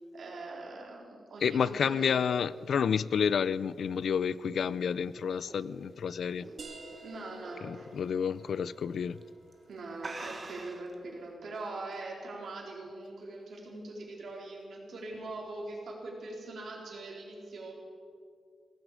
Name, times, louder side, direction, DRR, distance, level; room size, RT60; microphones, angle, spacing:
voice 1, 0.1-2.2 7.0-7.9 9.7-17.7, right 2 dB, 65° right, 3.8 m, -42 dB
voice 2, 1.4-6.5 7.6-9.2, left 7 dB, 70° left, 0.4 m, -30 dB
sound 1, 3.9-7.0 7.4-7.7 8.1-8.2 9.0-9.2 9.5-9.6 10.0-10.9, right 3 dB, 30° right, 1.6 m, -45 dB
sound 2, 6.6-11.9, right 3 dB, 50° right, 1.7 m, -53 dB
17.5 x 15.5 x 5.0 m
wide cardioid pair, 140°, 0 cm